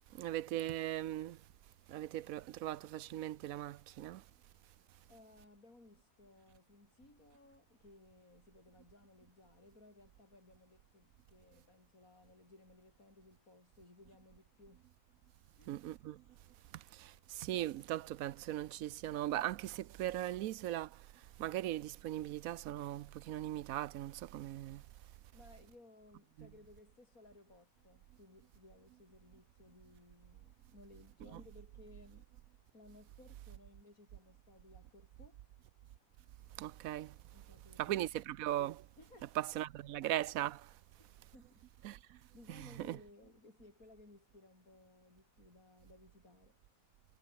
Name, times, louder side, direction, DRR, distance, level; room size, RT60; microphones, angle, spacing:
voice 1, 0.2-1.4 1.9-4.2 15.7-16.2 17.4-20.9 21.4-24.8 31.3-31.4 36.6-37.1 37.8-38.8 39.4-40.6 41.8-42.0 42.5-43.0, right 13 dB, 80° right, 1.1 m, -39 dB
voice 2, 5.1-14.9 15.6-15.9 25.3-32.3 32.7-35.4 37.3-38.0 39.0-39.3 41.3-41.6 42.3-47.0, left 2 dB, 80° left, 6.2 m, -61 dB
omnidirectional pair, 1.5 m